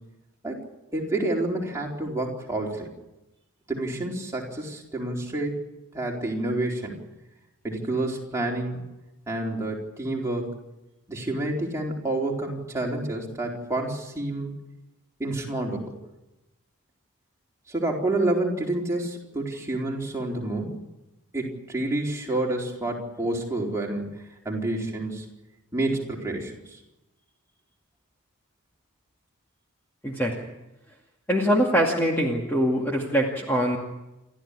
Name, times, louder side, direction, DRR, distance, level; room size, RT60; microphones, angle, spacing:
voice 1, 0.9-2.9 3.7-5.6 5.9-7.0 7.6-8.9 9.3-10.5 11.1-14.5 15.2-16.0 17.7-20.7 21.3-25.3 25.7-26.8, right 2 dB, 15° right, -2 dB, 4.1 m, -29 dB
voice 2, 30.0-30.3 31.3-33.8, equal, 10° left, -1 dB, 2.2 m, -23 dB
29.0 x 13.5 x 9.9 m, 0.97 s
head